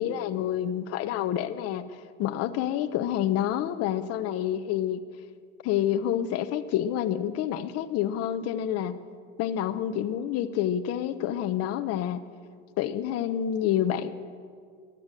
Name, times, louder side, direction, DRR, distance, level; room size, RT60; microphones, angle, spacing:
voice 1, 0.0-5.0 5.6-9.0 9.4-12.3 12.8-14.1, left 10 dB, 50° left, 11 dB, 0.8 m, -28 dB
14.5 x 11.0 x 7.6 m, 2.1 s
supercardioid pair, 105°, 31 cm